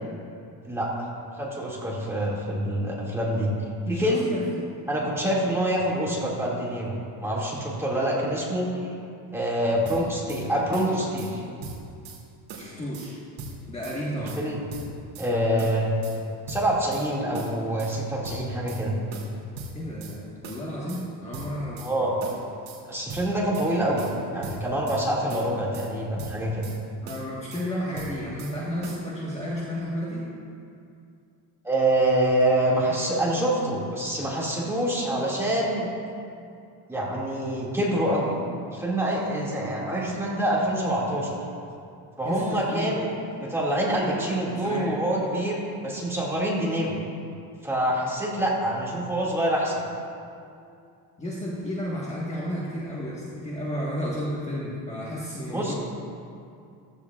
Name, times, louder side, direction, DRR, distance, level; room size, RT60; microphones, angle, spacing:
voice 1, 1.4-3.5 3.9-4.4 4.9-8.9 9.3-11.4 14.2-14.6 15.2-15.9 16.5-19.0 21.8-22.2 22.9-24.1 24.3-26.7 31.6-35.9 36.9-38.4 38.7-41.4 42.2-43.1 43.4-47.0 47.6-49.8 55.5-55.7, right 1 dB, 5° right, -5 dB, 2.1 m, -26 dB
voice 2, 3.9-4.4 12.6-13.2 13.7-14.4 19.7-22.0 27.0-30.3 42.2-43.0 44.0-44.9 50.5-50.7 51.2-55.7, equal, 15° left, -6 dB, 1.3 m, -32 dB
sound 1, 9.9-10.4 10.7-11.3 11.6-12.2 12.5-13.1 13.4-14.0 14.3-15.3 15.6-16.2 16.5-17.1 17.3-18.0 18.2-18.8 19.1-20.2 20.4-21.0 21.3-21.9 22.2-22.8 23.1-23.7 24.0-25.0 25.3-25.9 26.2-26.8 27.1-27.7 28.0-28.6 28.8-29.0, right 3 dB, 55° right, 2.6 m, -40 dB
15.5 x 13.5 x 2.4 m, 2.5 s
cardioid pair, 155°, 40 cm